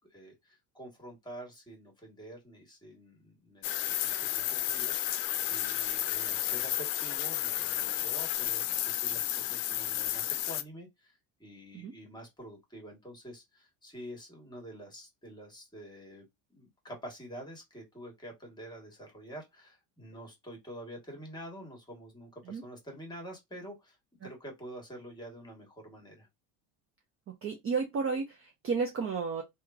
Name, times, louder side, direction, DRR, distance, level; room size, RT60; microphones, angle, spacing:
voice 1, 0.1-16.2 16.5-24.0 24.2-26.3, right 1 dB, 10° left, 1.4 m, -47 dB
sound 1, 3.6-10.6, left 13 dB, 70° left, 0.6 m, -32 dB
voice 2, 27.4-29.4, right 5 dB, 30° right, 0.6 m, -32 dB
2.9 x 2.4 x 2.3 m
supercardioid pair, 100°, 45 cm